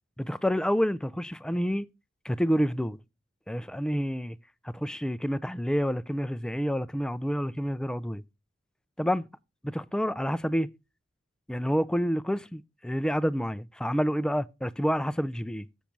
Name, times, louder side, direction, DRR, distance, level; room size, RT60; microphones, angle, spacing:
voice 1, 0.2-1.9 2.2-3.0 3.5-4.4 4.6-8.2 9.0-9.2 9.7-10.7 11.5-15.7, equal, 5° left, 0.3 m, -28 dB
7.3 x 5.8 x 5.1 m
head